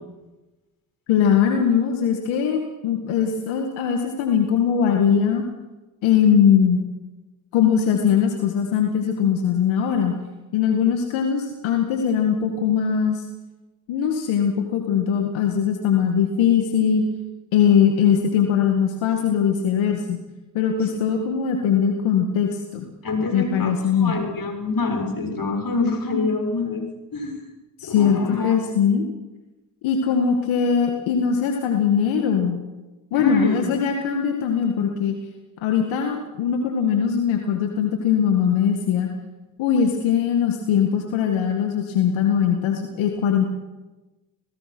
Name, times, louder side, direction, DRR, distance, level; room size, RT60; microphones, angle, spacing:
voice 1, 1.1-5.4 6.0-6.8 7.5-10.2 10.5-13.3 13.9-17.0 17.5-20.2 20.5-22.9 23.3-24.1 27.8-29.0 29.8-32.6 33.1-35.2 35.6-39.1 39.6-43.5, left 7 dB, 85° left, 3 dB, 2.0 m, -21 dB
voice 2, 23.0-26.8 27.1-27.4 27.8-28.6 33.1-33.7, left 3 dB, 45° left, 4 dB, 6.8 m, -25 dB
28.0 x 18.0 x 6.1 m, 1.1 s
hypercardioid pair, 40°, 46 cm